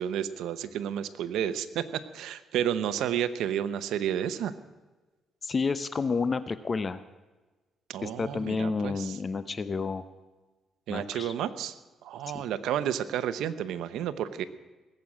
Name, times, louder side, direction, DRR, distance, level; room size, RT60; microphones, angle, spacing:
voice 1, 0.0-4.5 7.9-9.2 10.9-11.7 12.0-14.4, right 10 dB, 85° right, 11 dB, 0.8 m, -31 dB
voice 2, 5.4-7.0 8.0-10.0 10.9-11.3 12.3-12.5, left 4 dB, 35° left, 13 dB, 0.7 m, -30 dB
19.0 x 7.7 x 8.5 m, 1.2 s
cardioid pair, 90°, 0 cm